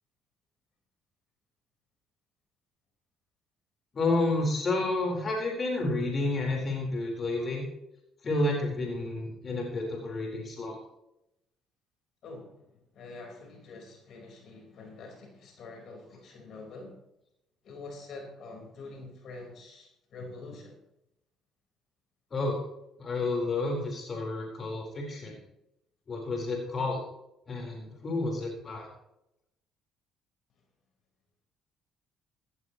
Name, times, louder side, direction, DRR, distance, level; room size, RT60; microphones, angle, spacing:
voice 1, 3.9-7.6 8.2-10.8 22.3-22.6 23.0-25.4 26.1-27.0 27.5-28.9, left 2 dB, 45° left, 0 dB, 4.3 m, -30 dB
voice 2, 12.9-16.9 17.6-20.7, left 3 dB, 65° left, 1 dB, 4.7 m, -45 dB
15.5 x 15.0 x 3.1 m, 0.84 s
supercardioid pair, 65°, 0 cm